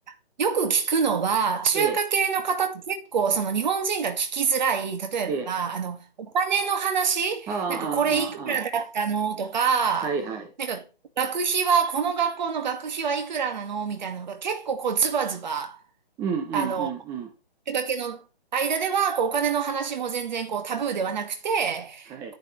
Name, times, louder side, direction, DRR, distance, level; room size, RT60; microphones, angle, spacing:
voice 1, 0.1-6.0 6.3-10.2 10.6-10.8 11.2-15.8 16.5-16.9 17.7-18.2 18.5-22.4, right 6 dB, 45° right, 2.1 m, -26 dB
voice 2, 7.5-8.6 10.0-10.5 16.2-17.3 22.1-22.3, right 5 dB, 10° right, 0.8 m, -30 dB
10.5 x 10.0 x 3.3 m
figure-of-eight pair, 145°, 31 cm